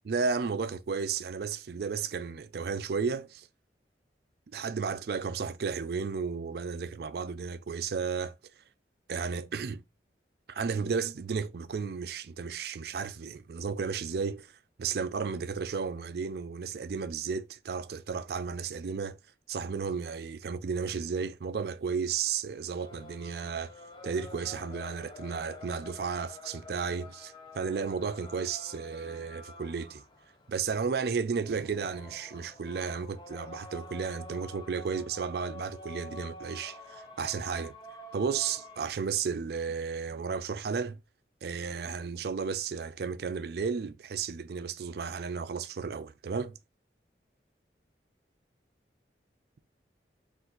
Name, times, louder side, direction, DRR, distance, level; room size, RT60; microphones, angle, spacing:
voice 1, 0.0-3.5 4.5-8.3 9.1-9.8 10.5-14.5 14.8-19.2 19.5-23.7 24.0-30.0 30.5-37.7 38.1-41.0 41.4-46.6, right 5 dB, 60° right, 0.4 m, -33 dB
sound 1, 22.8-38.8, left 2 dB, 25° left, 0.6 m, -48 dB
4.4 x 2.5 x 3.9 m
head